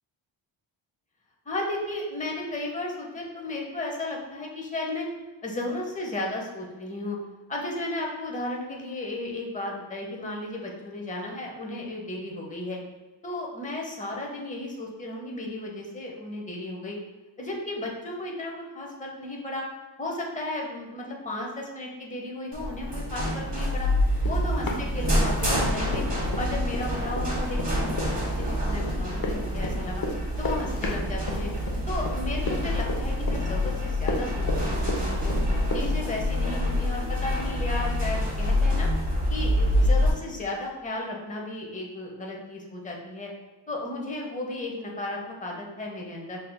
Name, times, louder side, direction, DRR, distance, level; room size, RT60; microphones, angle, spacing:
voice 1, 1.5-5.1 5.4-7.2 7.5-12.8 13.2-16.9 17.4-19.7 20.0-23.9 24.3-26.0 26.4-28.0 28.4-30.0 30.4-31.5 31.9-35.4 35.7-38.9 39.3-43.3 43.7-46.4, left 2 dB, 15° left, -1 dB, 0.8 m, -34 dB
sound 1, 22.5-40.1, left 1 dB, 15° right, 1.2 m, -26 dB
Run, 24.2-25.6 25.9-35.9, left 2 dB, 50° left, 0.8 m, -33 dB
5.5 x 3.4 x 2.2 m, 1.2 s
cardioid pair, 85°, 47 cm